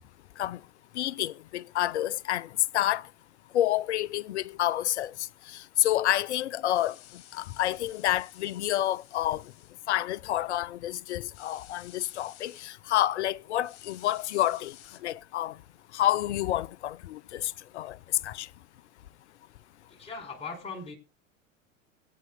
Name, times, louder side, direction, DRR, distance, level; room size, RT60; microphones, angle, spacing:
voice 1, 1.0-2.5 2.7-3.0 3.5-5.1 5.5-7.0 7.3-9.4 9.9-14.7 15.0-15.6 15.9-18.0 18.2-18.5, left 13 dB, 60° left, 0.6 m, -29 dB
sound 1, 6.7-9.7 11.3-12.7 13.6-15.0, left 12 dB, 35° left, 4.6 m, -53 dB
voice 2, 19.9-20.9, left 4 dB, 15° left, 4.9 m, -39 dB
23.0 x 9.3 x 2.2 m
figure-of-eight pair, 85°, 39 cm